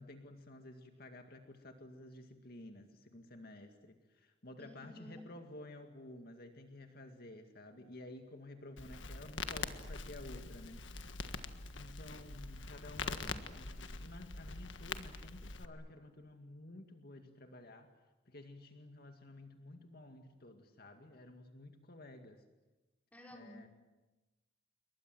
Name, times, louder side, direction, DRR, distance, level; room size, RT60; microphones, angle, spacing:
voice 1, 0.0-10.8 11.7-17.9 18.3-22.4 23.3-23.7, left 1 dB, 55° left, 5 dB, 2.1 m, -52 dB
voice 2, 4.6-5.3 13.1-13.4 23.1-23.7, left 1 dB, 10° left, 0 dB, 4.8 m, -53 dB
Crackle, 8.8-15.7, left 4 dB, 85° left, 1.6 m, -44 dB
29.0 x 22.5 x 7.8 m, 1.1 s
head